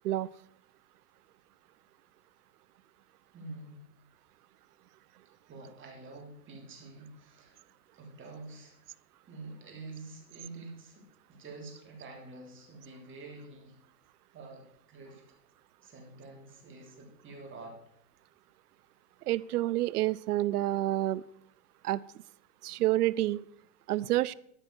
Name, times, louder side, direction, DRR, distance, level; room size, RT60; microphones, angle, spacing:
voice 1, 3.3-3.8 5.5-7.6 7.9-8.8 9.2-13.7 14.3-14.6 14.9-15.2 15.8-17.8, right 3 dB, 25° right, 1 dB, 3.4 m, -47 dB
voice 2, 19.3-21.2 21.8-22.0 22.6-23.4 23.9-24.3, right 15 dB, 70° right, 21 dB, 0.6 m, -28 dB
13.5 x 5.7 x 6.2 m, 0.73 s
hypercardioid pair, 110°, 47 cm